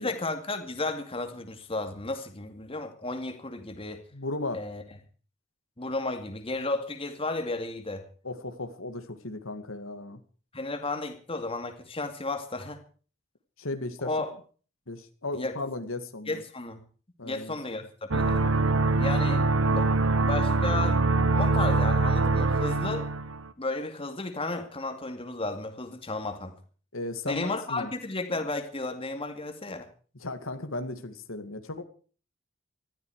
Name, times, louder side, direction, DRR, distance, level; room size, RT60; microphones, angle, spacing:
voice 1, 0.0-4.0 4.5-4.8 5.8-8.1 10.5-12.8 14.0-14.3 15.3-15.5 16.3-16.8 17.2-18.4 19.0-19.9 20.2-21.0 21.3-23.1 23.6-26.6 27.3-29.9, left 2 dB, 30° left, 2.3 m, -33 dB
voice 2, 4.1-4.6 8.2-10.2 13.6-14.1 14.9-16.4 17.2-17.8 19.2-19.7 26.9-27.9 30.2-31.8, left 2 dB, 85° left, 2.3 m, -36 dB
sound 1, 18.1-23.5, right 3 dB, 75° right, 1.3 m, -24 dB
19.5 x 14.0 x 4.9 m
head